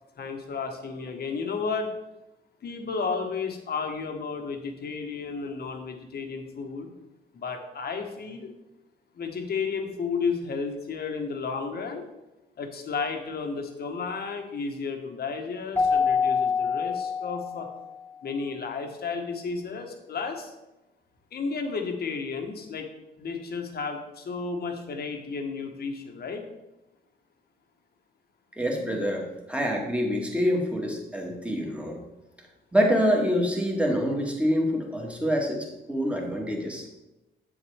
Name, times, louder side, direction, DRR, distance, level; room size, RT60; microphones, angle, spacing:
voice 1, 0.2-1.9 2.6-6.9 7.3-8.5 9.1-12.0 12.6-17.7 18.2-20.5 21.3-22.9 23.2-26.4, left 5 dB, 50° left, 4 dB, 1.4 m, -32 dB
Keyboard (musical), 15.7-18.0, left 5 dB, 10° left, 1.0 m, -26 dB
voice 2, 28.6-32.0 32.7-37.0, equal, 5° right, 0 dB, 1.9 m, -26 dB
7.9 x 7.2 x 3.5 m, 0.97 s
cardioid pair, 90°, 20 cm